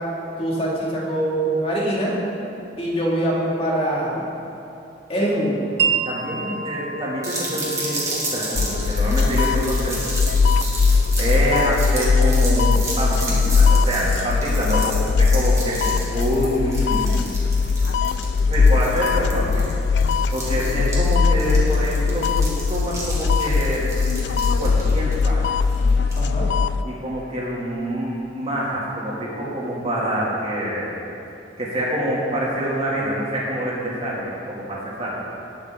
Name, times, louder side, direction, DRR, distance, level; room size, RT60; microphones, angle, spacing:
voice 1, 0.4-2.2 2.8-4.3 5.1-5.7 26.2-26.5, right 1 dB, 35° left, -6 dB, 2.6 m, -23 dB
Wind chime, 5.8-13.4, right 6 dB, 65° right, 1.0 m, -31 dB
voice 2, 6.0-10.0 11.2-17.4 18.5-19.6 20.3-24.1 24.3-25.5 26.8-31.0 31.6-35.2, equal, 35° right, -6 dB, 2.8 m, -26 dB
sound 1, 7.2-26.3, right 2 dB, 20° right, 2.5 m, -32 dB
sound 2, 8.5-26.8, left 4 dB, 70° left, 0.3 m, -20 dB
19.0 x 7.1 x 3.9 m, 3.0 s
head